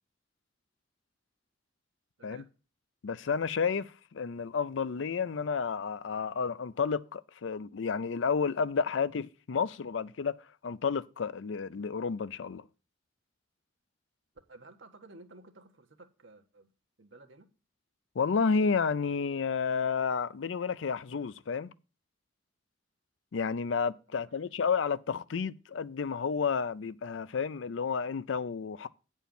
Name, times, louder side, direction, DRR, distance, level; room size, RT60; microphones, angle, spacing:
voice 1, 3.0-10.4 10.6-12.7 18.2-21.7 23.3-28.9, left 5 dB, 80° left, 0.5 m, -31 dB
voice 2, 14.5-16.7 17.0-17.5 24.1-24.4, right 2 dB, 80° right, 1.4 m, -54 dB
9.1 x 4.5 x 7.1 m
head